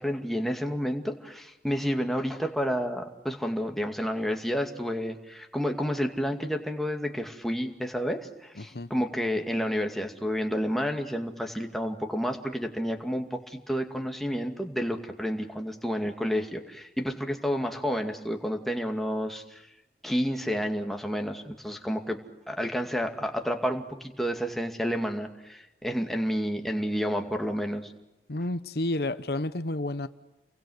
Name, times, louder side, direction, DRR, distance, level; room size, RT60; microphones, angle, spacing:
voice 1, 0.0-19.6 20.0-22.2 22.5-27.9, equal, ahead, 2.3 m, -30 dB
voice 2, 8.6-8.9 28.3-30.1, left 2 dB, 60° left, 1.0 m, -30 dB
29.5 x 23.5 x 8.0 m
head